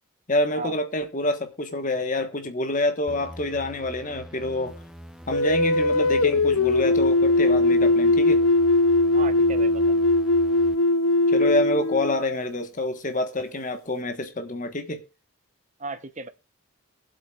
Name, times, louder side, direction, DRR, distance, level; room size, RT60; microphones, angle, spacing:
voice 1, 0.3-4.8 5.3-8.4 11.3-15.0, left 2 dB, 35° left, 1.4 m, -27 dB
sound 1, 3.1-10.8, equal, ahead, 0.6 m, -43 dB
sound 2, 5.3-12.7, left 2 dB, 65° left, 0.6 m, -20 dB
voice 2, 9.1-10.1 11.4-11.5 15.8-16.3, right 3 dB, 30° right, 0.9 m, -36 dB
22.0 x 8.0 x 2.5 m
head